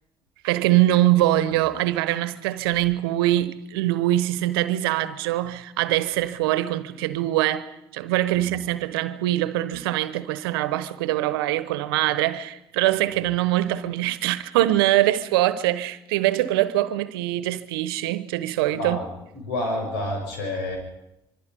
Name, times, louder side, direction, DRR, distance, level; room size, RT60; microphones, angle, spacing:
voice 1, 0.4-19.0, right 15 dB, 85° right, 1.0 m, -23 dB
voice 2, 18.7-19.1 19.3-20.8, left 1 dB, 85° left, 6.8 m, -29 dB
26.0 x 23.5 x 5.4 m
hypercardioid pair, 55°, 12 cm